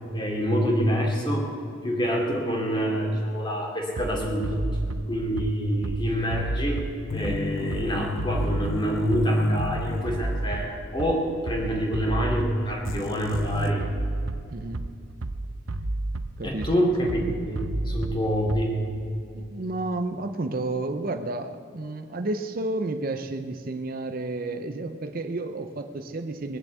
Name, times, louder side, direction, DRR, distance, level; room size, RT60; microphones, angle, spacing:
voice 1, 0.1-1.4 1.8-4.6 5.1-6.8 7.1-13.9 16.4-18.7, equal, 25° left, -1 dB, 2.7 m, -26 dB
Bass drum, 4.0-18.9, right 2 dB, 90° right, 0.7 m, -32 dB
sound 1, 7.1-10.9 11.1-11.2 12.8-13.7, left 2 dB, 85° left, 0.7 m, -33 dB
voice 2, 14.5-14.9 16.4-16.7 19.3-26.6, right 2 dB, 45° right, 7 dB, 0.6 m, -31 dB
20.5 x 7.1 x 8.1 m, 2.5 s
head